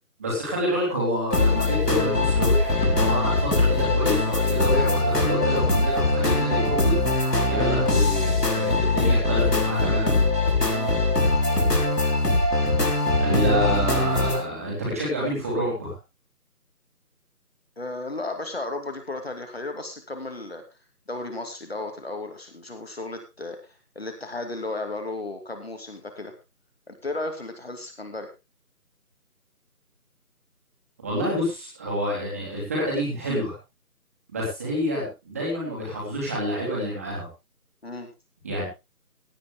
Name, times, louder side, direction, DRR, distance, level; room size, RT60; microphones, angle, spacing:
voice 1, 0.2-7.0 7.5-10.2 13.2-16.0 31.0-33.5 34.3-37.3 38.4-38.6, equal, 10° right, -5 dB, 2.9 m, -28 dB
sound 1, 1.3-14.4, left 2 dB, 85° left, 4.7 m, -22 dB
voice 2, 17.8-20.6 21.1-23.6 24.0-26.3 26.9-28.3 37.8-38.1, left 2 dB, 40° left, 5 dB, 2.6 m, -34 dB
17.0 x 10.0 x 3.7 m, 0.27 s
figure-of-eight pair, 165°, 46 cm